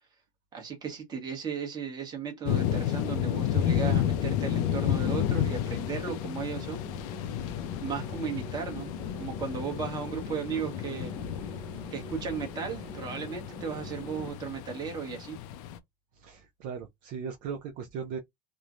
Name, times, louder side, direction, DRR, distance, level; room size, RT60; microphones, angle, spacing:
voice 1, 0.5-6.9 7.8-8.9 9.2-11.1 11.9-15.4, right 6 dB, 20° right, 1.0 m, -35 dB
sound 1, 2.5-15.8, left 10 dB, 65° left, 0.5 m, -32 dB
sound 2, 3.8-14.3, equal, 10° left, 0.6 m, -45 dB
voice 2, 16.1-18.2, right 6 dB, 40° right, 0.5 m, -38 dB
3.1 x 2.1 x 2.4 m
cardioid pair, 165°, 21 cm